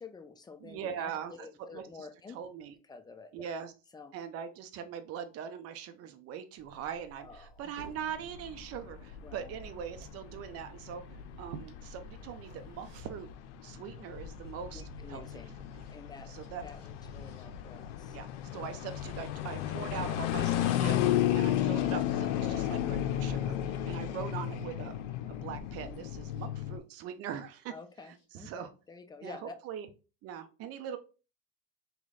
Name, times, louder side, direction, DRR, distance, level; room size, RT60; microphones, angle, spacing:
voice 1, 0.0-2.4 2.9-3.5 3.9-4.1 7.2-7.7 9.2-9.7 14.7-15.6 15.9-16.3 16.6-18.2 23.7-24.0 27.7-29.5, left 4 dB, 10° left, 8 dB, 0.5 m, -49 dB
voice 2, 0.6-1.3 1.7-2.1 2.3-2.7 3.3-3.7 4.1-11.0 11.4-13.3 13.6-14.8 15.1-15.4 16.3-16.6 18.1-18.3 18.5-24.9 25.3-27.7 28.3-28.7 29.2-29.9 30.2-31.0, right 8 dB, 40° right, 8 dB, 0.7 m, -41 dB
Liquid, 6.6-13.3, right 4 dB, 85° right, 1.0 m, -53 dB
sound 1, 7.8-26.8, left 11 dB, 75° left, 0.6 m, -34 dB
sound 2, 10.7-26.5 27.6-28.2, left 4 dB, 45° left, 1.6 m, -57 dB
3.1 x 3.1 x 3.8 m, 0.33 s
supercardioid pair, 110°, 36 cm